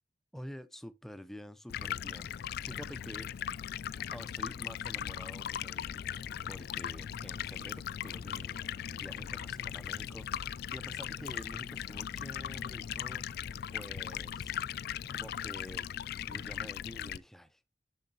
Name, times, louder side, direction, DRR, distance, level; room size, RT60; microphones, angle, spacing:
voice 1, 0.3-3.3 4.1-14.5 15.1-15.9 16.3-17.7, equal, ahead, 0.5 m, -48 dB
Stream, 1.7-17.2, left 10 dB, 60° left, 0.3 m, -39 dB
sound 1, 7.4-15.4, left 1 dB, 65° right, 4.2 m, -56 dB
10.5 x 6.3 x 2.9 m
head